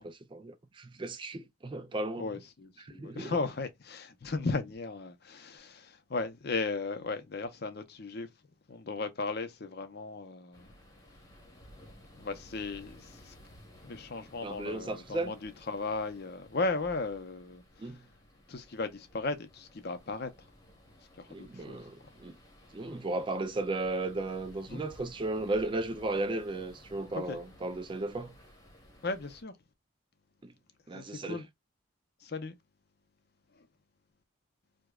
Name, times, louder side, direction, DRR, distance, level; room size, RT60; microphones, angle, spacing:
voice 1, 0.0-2.3 2.8-3.3 14.4-15.3 17.8-18.0 21.3-22.4 22.7-28.3 30.4-30.5 30.9-31.4, right 2 dB, 25° right, 0.3 m, -35 dB
voice 2, 2.2-8.3 8.7-10.7 12.2-13.3 13.8-18.0 18.5-20.3 21.2-21.8 24.7-24.8 27.1-27.4 29.0-29.5 30.9-31.5 32.2-32.5, left 3 dB, 50° left, 0.6 m, -36 dB
sound 1, 10.5-29.4, equal, 15° left, 1.0 m, -56 dB
4.8 x 2.2 x 2.3 m
head